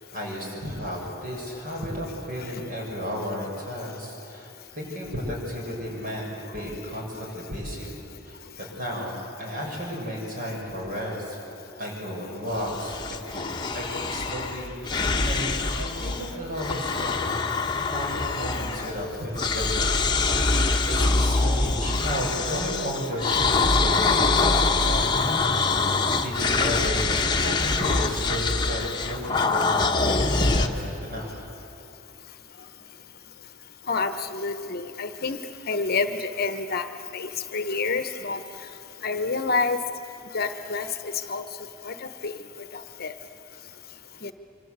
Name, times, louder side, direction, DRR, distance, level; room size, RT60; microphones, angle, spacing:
voice 1, 0.0-8.0 8.3-8.4 8.8-11.4 11.8-13.0 13.3-13.4 13.7-17.3 17.8-19.9 20.2-20.5 20.9-25.2 25.6-25.8 26.2-31.5, equal, 45° right, -1 dB, 6.9 m, -33 dB
sound 1, 12.5-16.3 16.5-19.1 19.4-30.7, left 3 dB, 25° left, 1.2 m, -24 dB
voice 2, 33.9-35.4 35.7-36.9 37.1-38.4 39.0-39.8 40.3-40.9 41.3-41.4 41.8-42.3 43.0-43.1 44.2-44.3, left 4 dB, 50° left, 9 dB, 1.0 m, -28 dB
25.5 x 25.0 x 8.1 m, 2.8 s
head